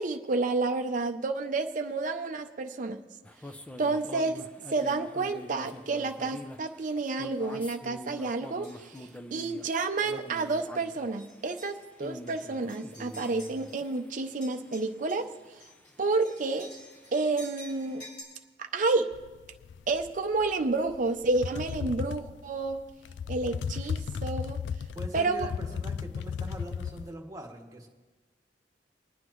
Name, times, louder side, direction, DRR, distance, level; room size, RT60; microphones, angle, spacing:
voice 1, 0.0-3.0 3.8-15.3 16.0-16.7 17.1-18.0 18.6-19.1 19.9-22.8 23.3-24.6 25.1-25.5, right 3 dB, 45° right, 5 dB, 0.6 m, -30 dB
sound 1, 3.2-18.1, left 1 dB, 10° left, 0.5 m, -46 dB
sound 2, 8.6-9.1 9.6-9.8 10.5-10.8 11.2-14.0 14.3-18.2, equal, 55° left, 4.1 m, -51 dB
sound 3, 19.1-27.1, left 6 dB, 80° left, 0.3 m, -35 dB
voice 2, 24.9-27.9, right 1 dB, 20° right, 1 dB, 1.4 m, -42 dB
24.0 x 9.6 x 3.1 m, 1.2 s
head